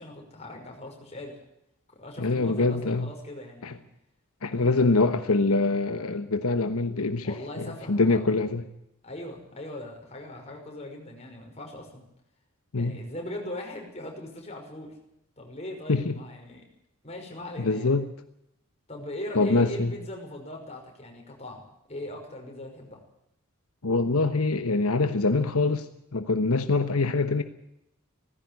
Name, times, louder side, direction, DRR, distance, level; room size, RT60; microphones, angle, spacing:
voice 1, 0.0-1.4 1.9-3.7 4.6-4.9 7.2-8.3 9.0-12.0 12.8-15.0 15.4-16.6 17.0-17.9 18.9-23.0, left 1 dB, 30° left, 5.8 m, -40 dB
voice 2, 2.2-3.1 3.6-3.7 4.4-8.6 12.7-13.0 15.9-16.1 17.6-18.1 19.3-19.9 23.8-25.9 26.1-27.4, left 3 dB, 80° left, 1.1 m, -24 dB
18.0 x 15.5 x 9.7 m
head